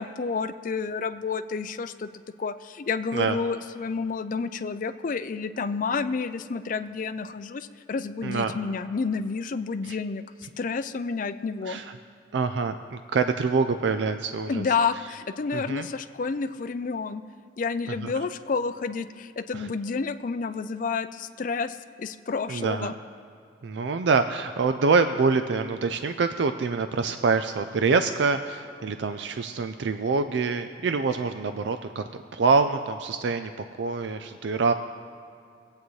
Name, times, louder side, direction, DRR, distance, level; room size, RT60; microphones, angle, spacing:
voice 1, 0.0-2.1 2.4-10.2 10.6-11.8 14.5-17.2 17.6-22.9, left 5 dB, 45° left, 11 dB, 0.4 m, -30 dB
voice 2, 12.3-14.6 15.5-15.9 18.0-18.1 19.5-19.7 22.5-22.9 23.6-32.0 32.3-34.7, right 4 dB, 75° right, 9 dB, 0.4 m, -25 dB
22.0 x 8.4 x 3.2 m, 2.4 s
head